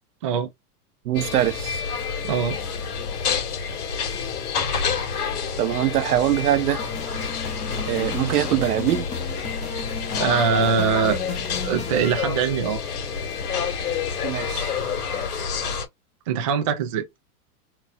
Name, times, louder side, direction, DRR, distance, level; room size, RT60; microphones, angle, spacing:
voice 1, 1.0-1.8 5.6-6.8 7.9-9.1 14.2-14.7, right 13 dB, 75° right, 0.9 m, -23 dB
sound 1, 1.1-15.9, left 6 dB, 80° left, 2.3 m, -28 dB
voice 2, 2.2-2.6 10.2-11.3 11.6-12.8 16.3-17.0, right 6 dB, 25° right, 0.3 m, -22 dB
sound 2, 6.8-12.1, left 5 dB, 15° left, 0.7 m, -34 dB
4.2 x 2.3 x 2.9 m
supercardioid pair, 150°, 45 cm